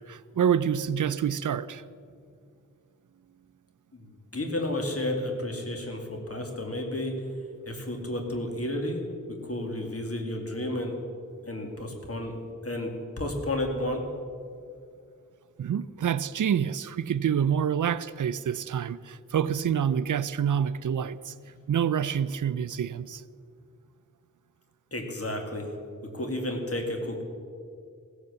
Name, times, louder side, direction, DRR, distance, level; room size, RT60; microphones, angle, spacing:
voice 1, 0.0-1.8 15.6-21.3 21.7-23.2, right 8 dB, 65° right, 0.5 m, -27 dB
voice 2, 3.9-7.2 7.7-11.0 11.4-14.0 24.9-25.7 26.1-27.2, left 1 dB, 45° left, 2.3 m, -32 dB
16.0 x 8.0 x 6.9 m
wide cardioid pair, 60°, 33 cm